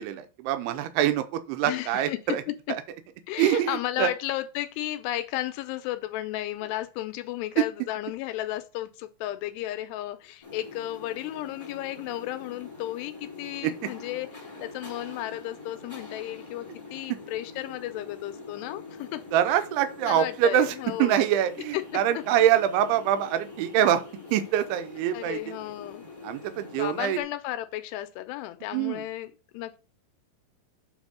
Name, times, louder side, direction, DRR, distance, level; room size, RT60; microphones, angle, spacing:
voice 1, 0.0-2.4 2.7-2.8 3.4-4.1 13.6-13.7 19.3-20.7 21.0-24.0 24.3-25.6 26.2-27.2 28.7-29.1, right 10 dB, 85° right, 2.7 m, -25 dB
voice 2, 1.7-2.2 3.3-19.2 20.0-21.2 21.7-22.2 25.1-26.0 26.7-29.8, left 14 dB, 85° left, 2.7 m, -34 dB
sound 1, 10.4-27.2, left 4 dB, 10° left, 1.7 m, -45 dB
7.3 x 3.6 x 6.2 m
omnidirectional pair, 4.7 m